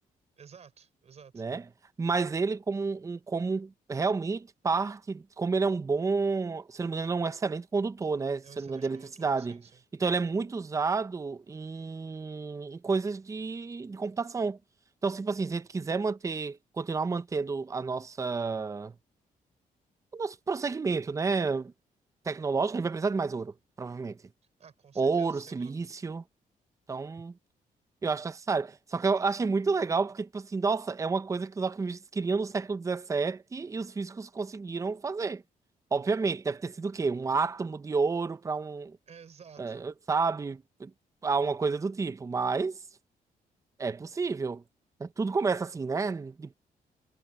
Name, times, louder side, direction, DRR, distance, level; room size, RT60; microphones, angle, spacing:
voice 1, 0.4-1.5 8.4-9.8 24.6-25.9 39.1-39.9, right 6 dB, 45° right, 4.7 m, -52 dB
voice 2, 2.0-9.6 10.0-14.6 15.0-18.9 20.1-21.7 22.3-24.2 25.0-26.2 26.9-27.3 28.0-35.4 35.9-39.0 39.6-40.9 41.2-42.8 43.8-44.6 45.0-46.5, right 4 dB, 20° right, 0.6 m, -30 dB
cardioid pair, 125°, 15 cm